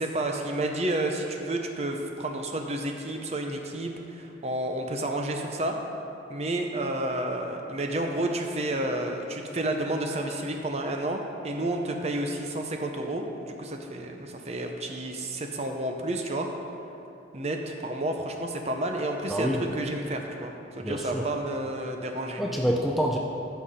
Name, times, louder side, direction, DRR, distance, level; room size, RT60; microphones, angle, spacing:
voice 1, 0.0-5.8 6.3-16.5 17.3-22.4, right 1 dB, 35° right, 3 dB, 0.7 m, -30 dB
voice 2, 19.3-19.6 20.8-21.3 22.4-23.2, equal, ahead, -2 dB, 0.5 m, -27 dB
14.0 x 5.8 x 4.2 m, 2.7 s
head